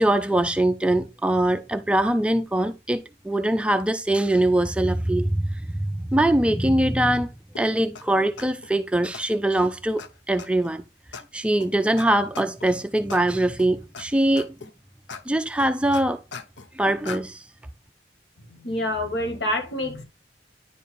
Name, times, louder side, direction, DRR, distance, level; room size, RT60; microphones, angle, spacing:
voice 1, 0.0-10.0 10.3-10.8 11.3-14.5 15.3-16.2 16.8-17.4, right 1 dB, 5° right, 0.3 m, -22 dB
sound 1, 7.5-7.6 7.9-8.0 8.4-8.7 9.1-9.2 9.6-9.7 10.0-10.1 10.4-10.7 11.1-11.2 11.6-11.7 12.0-12.1 12.3-12.7 13.1-13.2 13.6-14.0 14.4-14.7 15.1-15.2 15.6-16.7 17.0-17.2, left 5 dB, 90° left, 0.8 m, -38 dB
voice 2, 18.6-20.0, left 1 dB, 70° left, 1.7 m, -27 dB
9.9 x 4.5 x 3.4 m
head